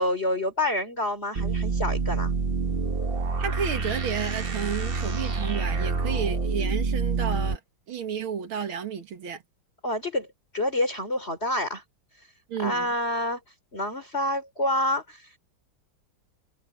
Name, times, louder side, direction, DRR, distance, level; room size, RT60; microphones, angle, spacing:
voice 1, 0.0-2.3 9.8-10.3 10.5-11.8 12.6-13.4 13.7-15.2, left 1 dB, 30° left, 3.9 m, -27 dB
sound 1, 1.4-7.6, right 4 dB, 30° right, 1.3 m, -27 dB
voice 2, 3.4-7.6 7.9-9.4 12.5-12.9, right 7 dB, 90° right, 2.4 m, -32 dB
omnidirectional pair, 2.2 m